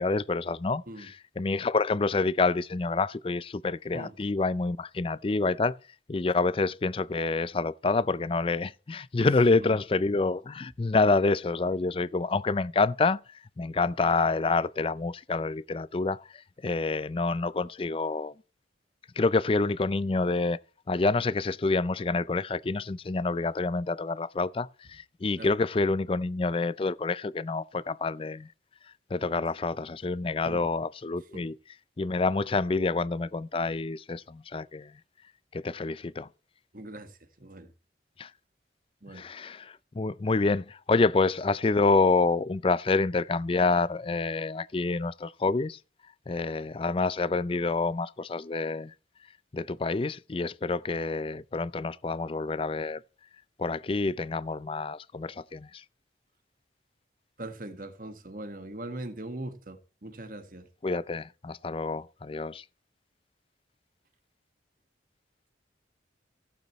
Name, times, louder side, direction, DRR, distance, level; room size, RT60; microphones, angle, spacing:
voice 1, 0.0-5.8 6.1-13.2 13.6-16.3 16.6-18.3 19.2-20.6 20.9-28.5 29.1-31.6 32.0-34.9 35.5-36.3 38.2-38.3 39.1-45.8 46.3-48.9 49.5-53.0 53.6-55.8 60.8-62.6, left 3 dB, 30° left, 0.4 m, -27 dB
voice 2, 36.7-37.7 39.0-39.2 57.4-60.7, right 1 dB, 50° right, 1.6 m, -41 dB
16.0 x 8.5 x 3.1 m
head